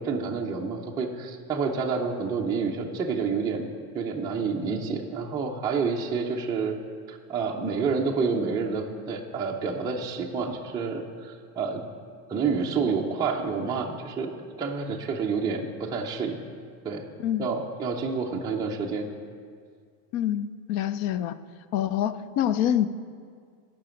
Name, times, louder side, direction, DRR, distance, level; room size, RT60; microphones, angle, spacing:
voice 1, 0.0-3.7 3.9-6.8 7.1-11.8 12.3-14.3 14.6-16.5 16.8-17.1 17.4-19.1, right 5 dB, 10° right, -2 dB, 0.4 m, -29 dB
voice 2, 20.1-21.3 21.7-22.9, left 11 dB, 45° left, 15 dB, 0.5 m, -26 dB
16.0 x 5.9 x 5.0 m, 2.1 s
supercardioid pair, 140°, 46 cm